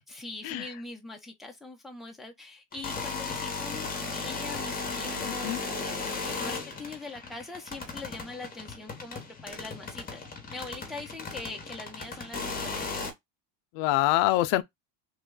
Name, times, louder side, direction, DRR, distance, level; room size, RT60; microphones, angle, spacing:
voice 1, 0.1-10.2 10.5-12.9, left 3 dB, ahead, 0.6 m, -42 dB
sound 1, 2.7-13.1, left 4 dB, 20° left, 1.0 m, -36 dB
voice 2, 5.2-5.6 13.7-14.6, left 16 dB, 80° left, 0.5 m, -25 dB
3.2 x 2.2 x 3.7 m
cardioid pair, 140°, 46 cm